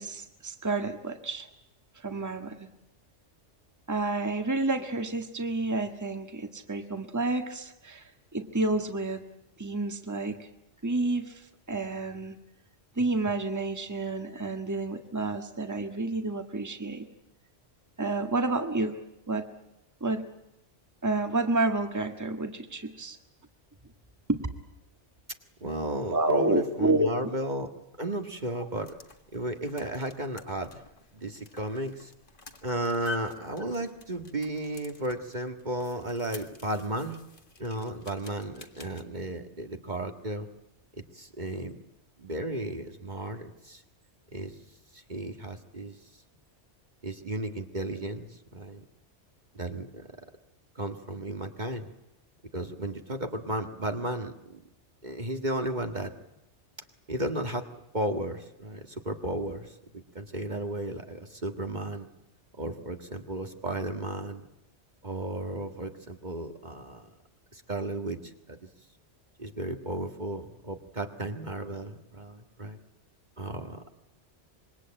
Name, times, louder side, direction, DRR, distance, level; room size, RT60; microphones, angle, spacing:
voice 1, 0.0-1.5 2.0-2.6 3.9-8.0 8.3-9.2 9.6-10.5 10.8-12.4 13.0-17.1 18.0-19.0 19.3-19.5 20.0-20.2 21.0-23.2 24.3-24.5 26.1-27.1, right 2 dB, 15° right, 6 dB, 1.7 m, -29 dB
voice 2, 25.6-27.7 28.0-29.0 29.3-30.8 31.1-32.1 32.6-37.2 37.6-40.5 41.0-41.8 42.2-43.8 44.3-44.6 44.9-46.0 47.0-48.8 49.5-50.1 50.8-51.9 52.5-54.3 55.0-56.1 57.1-57.7 57.9-62.1 62.6-64.5 65.0-67.1 67.5-68.2 68.5-68.7 69.4-72.8 73.4-73.9, right 1 dB, 40° right, 5 dB, 1.8 m, -34 dB
sound 1, 28.6-39.0, left 3 dB, 45° left, 2.0 m, -48 dB
26.0 x 23.0 x 8.8 m, 0.88 s
omnidirectional pair, 1.2 m